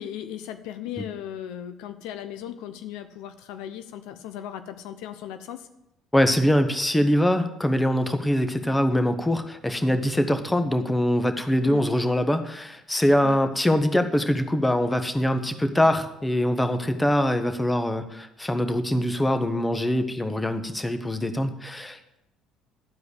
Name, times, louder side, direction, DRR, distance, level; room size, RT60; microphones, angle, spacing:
voice 1, 0.0-5.7 11.6-11.8 13.2-13.4, left 10 dB, 75° left, 10 dB, 0.7 m, -37 dB
voice 2, 6.1-22.2, equal, 10° left, 8 dB, 1.2 m, -23 dB
11.5 x 4.9 x 8.2 m, 0.86 s
supercardioid pair, 70°, 0 cm